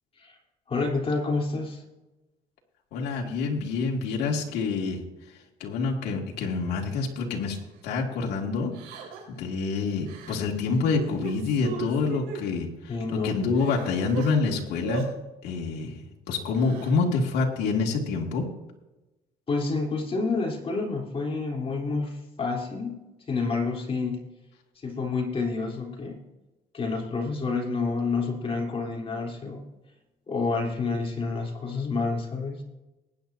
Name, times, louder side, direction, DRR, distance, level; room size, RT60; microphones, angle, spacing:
voice 1, 0.7-1.8 12.9-13.4 19.5-24.2 24.8-26.2 26.7-29.6 30.3-32.6, left 4 dB, 35° left, 0 dB, 3.5 m, -29 dB
voice 2, 2.9-5.0 5.6-7.6 7.8-8.7 9.3-12.9 13.2-15.1 15.4-16.0 16.3-18.4, left 4 dB, 80° left, 0 dB, 2.4 m, -27 dB
Crying sobbing, 6.9-7.0 7.5-7.7 8.7-9.4 10.0-10.3 10.7-12.4 13.0-13.1 13.4-14.3 14.8-15.1 16.4-16.9, right 7 dB, 85° right, 4.5 m, -37 dB
20.5 x 10.0 x 2.7 m, 1.0 s
cardioid pair, 110°, 17 cm